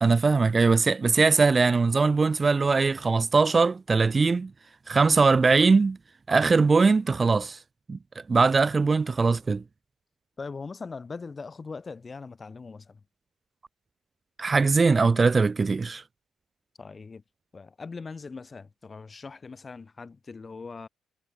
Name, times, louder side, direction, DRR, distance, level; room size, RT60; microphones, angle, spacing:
voice 1, 0.0-4.5 4.9-6.0 6.3-7.6 7.9-8.0 8.3-9.6 14.4-16.0, right 4 dB, 35° right, 0.8 m, -21 dB
voice 2, 10.4-13.0 16.8-17.2 17.5-20.9, left 4 dB, 35° left, 3.1 m, -40 dB
hypercardioid pair, 40°, 0 cm